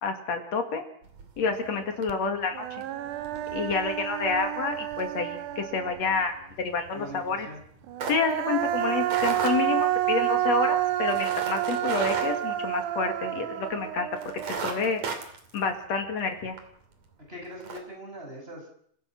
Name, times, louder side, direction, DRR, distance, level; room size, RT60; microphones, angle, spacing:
voice 1, 0.0-0.8 1.4-2.7 3.5-7.5 8.1-14.1 14.5-15.0 15.5-16.6, left 4 dB, 60° left, 6 dB, 3.3 m, -29 dB
sound 1, 1.0-1.7 2.0-2.3 2.6-13.4 13.7-13.8 14.1-16.7 17.1-17.2 17.5-17.8, right 5 dB, 65° right, 3.9 m, -37 dB
Human voice, 2.1-2.2 2.5-6.2 7.9-15.1, right 13 dB, 90° right, 2.5 m, -29 dB
voice 2, 6.9-7.6 17.3-18.7, equal, 20° right, 0 dB, 6.5 m, -41 dB
29.5 x 15.5 x 6.0 m, 0.64 s
omnidirectional pair, 3.4 m